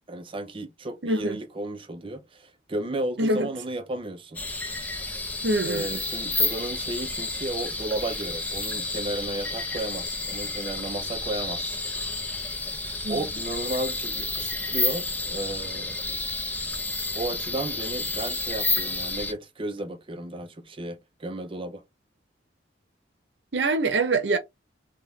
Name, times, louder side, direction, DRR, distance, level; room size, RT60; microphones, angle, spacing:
voice 1, 0.1-4.4 5.6-11.8 13.1-16.2 17.1-21.8, right 1 dB, 30° right, 0.6 m, -33 dB
voice 2, 1.0-1.4 3.2-3.5 5.4-5.9 13.0-13.2 23.5-24.4, right 2 dB, 70° right, 0.8 m, -24 dB
sound 1, 4.3-19.3, left 2 dB, 10° left, 0.7 m, -30 dB
3.6 x 2.3 x 2.9 m
head